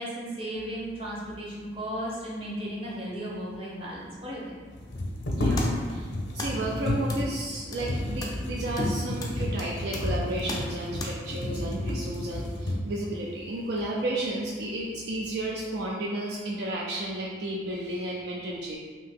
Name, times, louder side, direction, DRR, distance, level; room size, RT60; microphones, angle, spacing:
voice 1, 0.0-4.6, equal, 30° right, -6 dB, 0.7 m, -35 dB
sound 1, 3.3-3.4 3.5-3.6 4.7-13.1 13.8-13.9 14.3-15.0 15.3-15.9, left 1 dB, 70° left, 0.6 m, -31 dB
sound 2, 5.2-11.1, left 2 dB, 20° left, 0.3 m, -40 dB
voice 2, 5.3-18.8, right 1 dB, 65° right, -3 dB, 0.4 m, -32 dB
2.8 x 2.7 x 3.5 m, 1.5 s
head